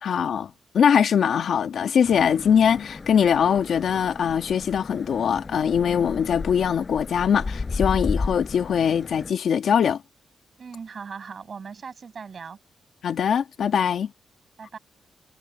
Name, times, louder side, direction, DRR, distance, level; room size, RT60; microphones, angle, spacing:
voice 1, 0.0-10.0 13.0-14.1, left 7 dB, 60° left, 1.9 m, -22 dB
sound 1, 2.0-9.3, left 3 dB, 25° left, 4.5 m, -33 dB
voice 2, 10.6-12.6 14.6-14.8, right 5 dB, 40° right, 6.9 m, -39 dB
wide cardioid pair, 170°, 0 cm